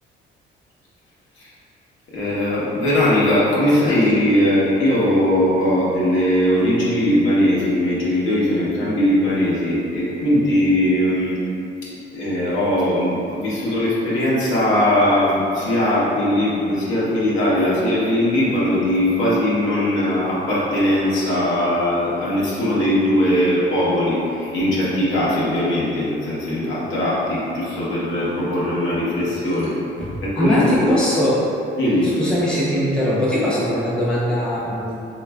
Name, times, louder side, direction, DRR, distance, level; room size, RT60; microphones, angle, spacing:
voice 1, 2.1-11.4 12.1-29.7 30.2-30.9 31.8-32.1, left 1 dB, 75° left, -8 dB, 0.9 m, -20 dB
voice 2, 30.0-31.5 32.2-35.1, equal, 5° left, -9 dB, 0.7 m, -21 dB
3.2 x 2.5 x 2.2 m, 2.6 s
cardioid pair, 90°, 20 cm